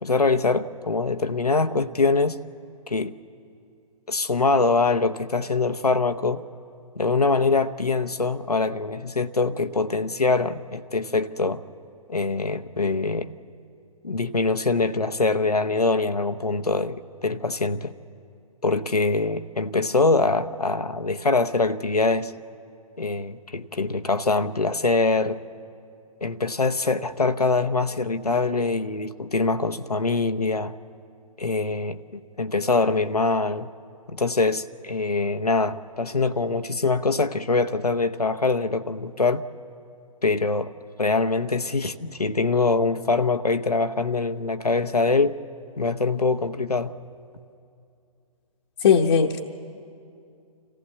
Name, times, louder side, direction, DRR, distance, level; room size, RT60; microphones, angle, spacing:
voice 1, 0.0-2.4 2.9-3.1 4.1-6.4 7.0-11.6 12.1-13.3 14.0-17.9 18.6-22.3 23.0-25.4 26.2-30.7 31.4-33.7 34.1-39.4 40.2-40.7 41.0-45.4 45.8-46.9, left 3 dB, 90° left, 10 dB, 0.8 m, -23 dB
voice 2, 48.8-49.4, left 7 dB, 50° left, 2 dB, 0.9 m, -18 dB
26.5 x 15.0 x 8.2 m, 2.5 s
figure-of-eight pair, 125°, 19 cm